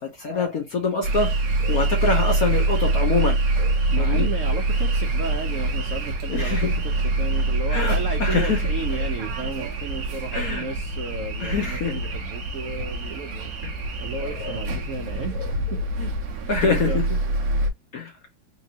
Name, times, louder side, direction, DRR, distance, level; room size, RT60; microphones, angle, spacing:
voice 1, 0.0-1.3 1.6-4.3 6.3-6.7 7.7-8.6 10.3-10.6 11.4-11.9 14.2-14.6 16.5-17.0 17.9-18.1, left 4 dB, 65° left, 0.9 m, -25 dB
sound 1, 1.0-17.7, right 2 dB, 55° right, 1.1 m, -25 dB
voice 2, 3.9-15.4 15.7-16.2 16.6-17.0, right 3 dB, 75° right, 0.7 m, -34 dB
4.4 x 2.8 x 2.8 m
omnidirectional pair, 2.3 m